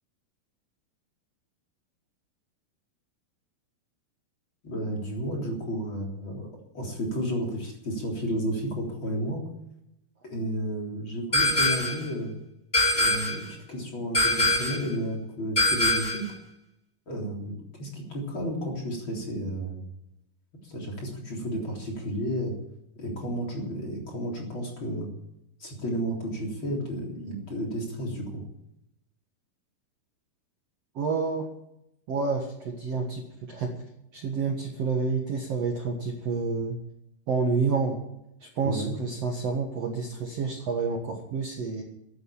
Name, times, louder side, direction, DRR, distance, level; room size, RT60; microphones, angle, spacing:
voice 1, 4.6-6.5 6.7-9.4 10.3-12.3 12.9-16.3 17.1-19.8 20.6-22.5 23.0-25.1 25.6-28.4 38.6-38.9, equal, 30° left, -1 dB, 4.1 m, -32 dB
sound 1, 11.3-12.1 12.7-13.5 14.1-14.9 15.6-16.3, left 1 dB, 15° left, 3.2 m, -23 dB
voice 2, 30.9-31.5 32.1-33.8 34.1-36.8 37.3-38.0 38.4-41.8, right 4 dB, 50° right, 2 dB, 2.1 m, -29 dB
14.5 x 10.5 x 8.7 m, 0.83 s
omnidirectional pair, 4.5 m